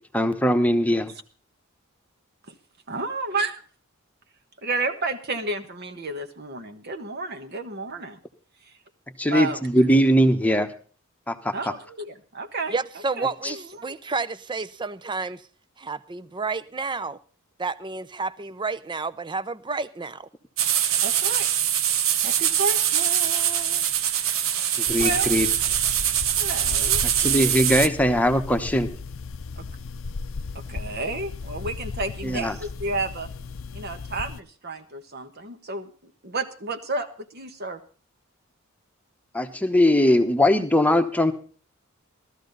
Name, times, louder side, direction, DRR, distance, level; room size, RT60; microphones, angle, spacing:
voice 1, 0.1-1.1 9.2-10.7 11.3-11.5 13.4-13.5 24.8-25.5 27.0-28.9 32.2-32.5 39.3-41.3, equal, 5° left, 1.0 m, -20 dB
voice 2, 2.9-3.6 4.6-8.2 8.7-8.8 9.3-9.6 11.5-12.7 13.2-14.0 21.0-21.5 22.2-23.9 24.2-24.6 25.0-25.3 26.4-27.0 29.6-29.7 30.5-33.3 33.7-37.8, right 3 dB, 50° right, 1.3 m, -31 dB
voice 3, 12.7-15.5 15.8-17.2 17.6-20.3, right 4 dB, 20° right, 0.6 m, -30 dB
sound 1, 20.6-27.9, right 10 dB, 75° right, 0.9 m, -23 dB
sound 2, 24.9-34.4, left 4 dB, 70° left, 0.6 m, -36 dB
16.5 x 13.0 x 4.0 m
head